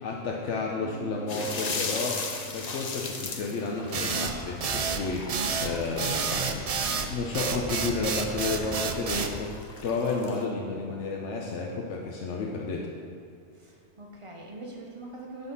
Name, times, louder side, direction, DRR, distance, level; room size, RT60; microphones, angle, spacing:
voice 1, 0.0-2.2 2.5-6.6 6.9-9.5 9.8-12.9, left 4 dB, 85° left, -1 dB, 1.1 m, -31 dB
sound 1, 0.8-13.8, right 7 dB, 80° right, 1.0 m, -51 dB
sound 2, 1.3-10.4, left 4 dB, 40° left, 0.7 m, -37 dB
sound 3, 3.9-9.3, right 5 dB, 50° right, 0.4 m, -29 dB
voice 2, 5.9-6.5 13.5-15.5, right 2 dB, 30° right, -1 dB, 1.0 m, -43 dB
9.7 x 4.2 x 5.4 m, 2.4 s
omnidirectional pair, 1.2 m